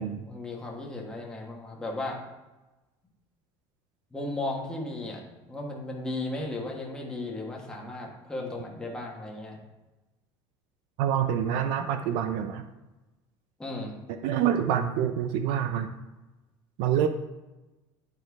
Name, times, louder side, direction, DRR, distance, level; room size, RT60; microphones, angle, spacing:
voice 1, 0.3-2.2 4.1-5.2 5.5-9.6 13.6-13.9, left 2 dB, 5° left, -2 dB, 1.4 m, -35 dB
voice 2, 11.0-12.6 14.2-16.0 16.8-17.1, right 9 dB, 55° right, 8 dB, 0.6 m, -26 dB
10.5 x 4.4 x 4.7 m, 1.1 s
cardioid pair, 175°, 10 cm